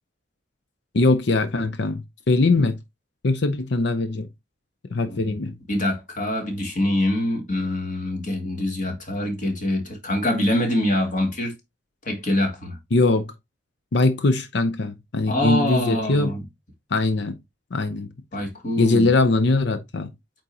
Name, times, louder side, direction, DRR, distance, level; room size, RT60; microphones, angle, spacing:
voice 1, 0.9-2.8 3.2-4.3 4.9-5.5 12.9-13.3 13.9-16.3 16.9-17.3 17.7-18.1 18.8-20.1, left 2 dB, 65° left, 0.6 m, -21 dB
voice 2, 5.7-11.5 12.1-12.8 15.3-16.4 18.3-19.1, left 1 dB, 45° left, 2.2 m, -24 dB
8.6 x 3.9 x 2.8 m
head